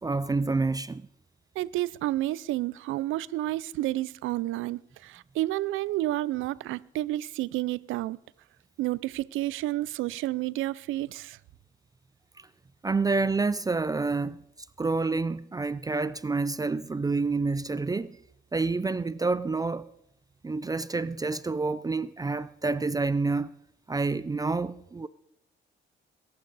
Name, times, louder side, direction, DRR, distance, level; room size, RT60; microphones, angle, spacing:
voice 1, 0.0-1.1 12.4-12.5 12.8-14.4 14.8-18.2 18.5-19.9 20.4-23.5 23.9-25.1, right 3 dB, 20° right, 0.4 m, -28 dB
voice 2, 1.6-8.2 8.8-11.4, right 16 dB, 85° right, 0.5 m, -30 dB
21.0 x 11.5 x 4.1 m
cardioid pair, 90°, 20 cm